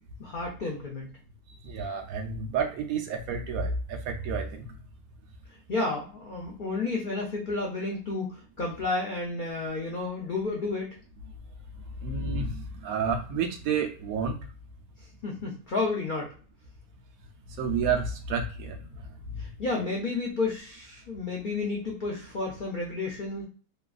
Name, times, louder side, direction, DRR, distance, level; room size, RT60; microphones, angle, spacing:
voice 1, 0.2-1.1 5.7-10.9 15.2-16.3 19.4-23.4, left 3 dB, 90° left, -2 dB, 0.4 m, -31 dB
voice 2, 1.6-4.8 12.0-14.4 17.5-19.5, right 5 dB, 70° right, 4 dB, 1.0 m, -30 dB
3.0 x 2.3 x 2.3 m, 0.39 s
omnidirectional pair, 1.6 m